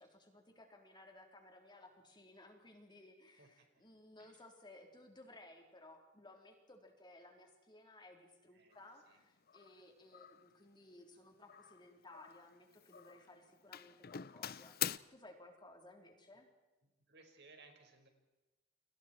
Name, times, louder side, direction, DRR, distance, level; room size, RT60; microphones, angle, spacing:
voice 1, 0.0-16.5, left 2 dB, 25° left, 3 dB, 3.8 m, -59 dB
voice 2, 3.3-3.8 4.2-4.4 8.5-9.2 16.8-18.1, right 3 dB, 60° right, 4 dB, 5.2 m, -63 dB
Doorbell, 8.7-8.9 9.5-9.8 10.1-10.5 11.5-12.6 12.8-13.3 13.7-15.0, left 11 dB, 50° left, 0.7 m, -44 dB
30.0 x 26.0 x 4.5 m, 1.1 s
head